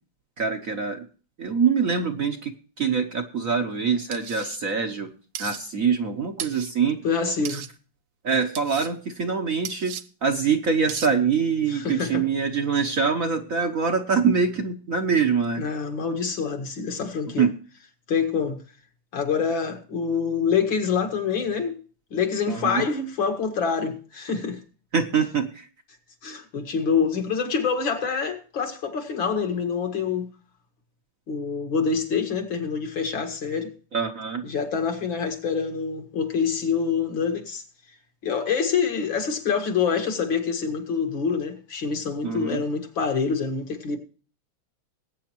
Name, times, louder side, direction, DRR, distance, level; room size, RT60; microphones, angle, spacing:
voice 1, 0.4-1.1 1.4-5.1 5.4-7.0 7.5-7.6 8.2-9.9 10.2-15.6 17.4-17.5 22.5-22.9 24.9-25.7 33.9-34.4 42.2-42.6, right 6 dB, 50° right, 1.2 m, -24 dB
sound 1, 4.1-4.6 5.4-5.6 6.4-6.7 7.5-7.7 8.6-8.9 9.7-10.0 10.9-11.1, right 10 dB, 70° right, 1.5 m, -35 dB
voice 2, 7.0-7.6 11.7-12.2 15.6-17.4 18.1-18.6 19.1-21.8 22.1-24.6 26.2-30.3 31.3-33.7 34.5-37.6 38.2-44.0, left 6 dB, 65° left, 2.6 m, -26 dB
20.5 x 9.1 x 3.0 m
omnidirectional pair, 2.3 m